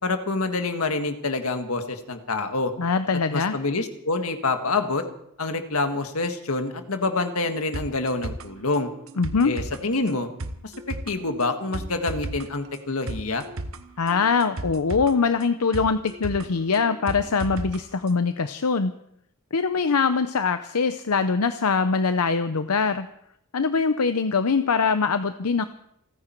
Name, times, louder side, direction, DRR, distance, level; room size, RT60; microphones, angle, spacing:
voice 1, 0.0-2.7 3.3-5.0 5.4-8.9 9.4-10.3 10.6-13.5, left 3 dB, 75° left, 6 dB, 1.8 m, -27 dB
voice 2, 2.8-3.5 9.2-9.5 14.0-18.9 19.5-23.1 23.5-25.6, left 5 dB, 90° left, 10 dB, 0.7 m, -23 dB
sound 1, 7.7-17.8 18.1-18.2, right 2 dB, 65° right, 1.1 m, -35 dB
28.5 x 9.9 x 4.5 m, 0.74 s
head